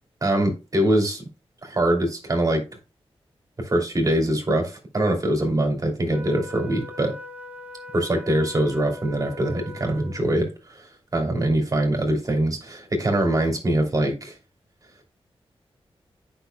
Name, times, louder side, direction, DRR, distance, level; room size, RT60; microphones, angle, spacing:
voice 1, 0.2-1.3 1.6-2.6 3.6-7.1 7.9-10.9 11.1-14.4, right 1 dB, 35° right, 3 dB, 2.7 m, -23 dB
Wind instrument woodwind instrument, 6.1-10.5, left 2 dB, 15° right, 1.1 m, -41 dB
10.5 x 5.8 x 2.2 m, 0.29 s
wide cardioid pair, 110°, 10 cm